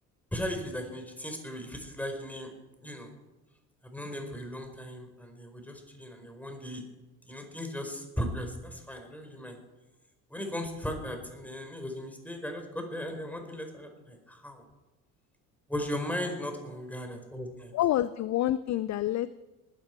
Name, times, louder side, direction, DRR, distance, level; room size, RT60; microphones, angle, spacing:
voice 1, 0.3-2.5 2.8-3.1 3.8-6.8 7.3-9.6 10.3-14.6 15.7-17.7, equal, 5° left, 4 dB, 4.6 m, -37 dB
voice 2, 17.7-19.3, left 13 dB, 40° left, 16 dB, 0.6 m, -27 dB
20.0 x 12.5 x 4.7 m, 1.1 s
hypercardioid pair, 60°, 45 cm